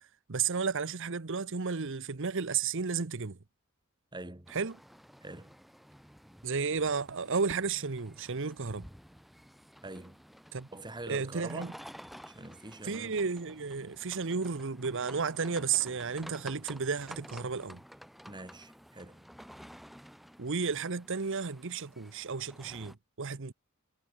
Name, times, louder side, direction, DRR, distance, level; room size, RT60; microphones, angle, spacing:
voice 1, 0.0-3.4 4.5-4.8 6.4-8.9 10.5-10.7 11.1-11.7 12.8-17.8 20.4-23.5, right 5 dB, 60° right, 0.9 m, -33 dB
voice 2, 4.1-4.5 5.2-5.6 9.8-10.2 10.7-11.8 12.2-13.2 18.3-19.3, right 2 dB, 20° right, 2.2 m, -45 dB
sound 1, 4.5-22.9, equal, ahead, 0.8 m, -52 dB
head